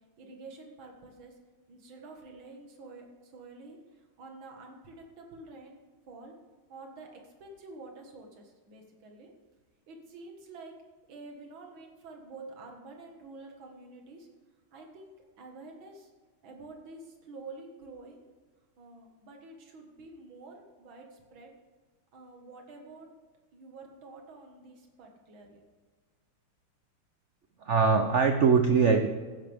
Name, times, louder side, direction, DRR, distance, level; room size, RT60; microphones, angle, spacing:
voice 1, 0.2-1.4 1.7-5.8 6.1-6.3 6.7-9.3 9.9-10.7 11.1-14.3 14.7-16.1 16.4-18.3 18.8-21.5 22.1-23.1 23.5-25.6, right 3 dB, 70° right, 2 dB, 2.5 m, -48 dB
voice 2, 27.6-29.1, right 5 dB, 85° right, 6 dB, 0.6 m, -22 dB
15.0 x 11.0 x 3.5 m, 1.4 s
omnidirectional pair, 2.3 m